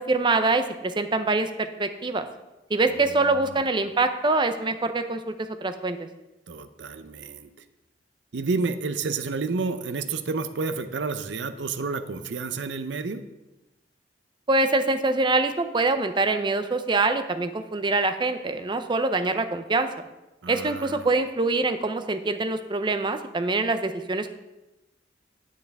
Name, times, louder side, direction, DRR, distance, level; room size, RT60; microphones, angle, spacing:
voice 1, 0.0-2.3 2.7-5.3 5.6-6.0 14.5-19.9 20.5-24.3, right 3 dB, 25° right, 9 dB, 0.6 m, -24 dB
voice 2, 3.0-3.6 6.5-7.5 8.3-13.2 20.4-21.1, right 4 dB, 75° right, 9 dB, 0.6 m, -30 dB
9.4 x 7.8 x 3.5 m, 1.0 s
head